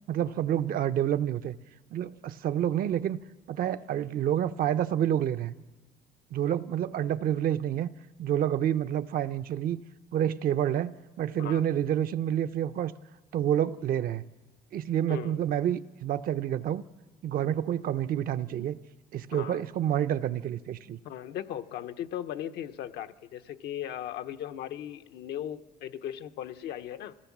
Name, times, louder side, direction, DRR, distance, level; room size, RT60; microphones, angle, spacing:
voice 1, 0.1-1.5 1.9-3.2 3.5-5.5 6.3-7.9 8.2-9.8 10.1-12.9 13.3-14.2 14.7-16.8 17.2-18.8 19.1-21.0, right 10 dB, 60° right, 0.7 m, -28 dB
voice 2, 15.1-15.4 19.3-19.6 21.0-27.1, left 11 dB, 75° left, 0.9 m, -37 dB
26.0 x 16.5 x 7.3 m
cardioid pair, 110°, 17 cm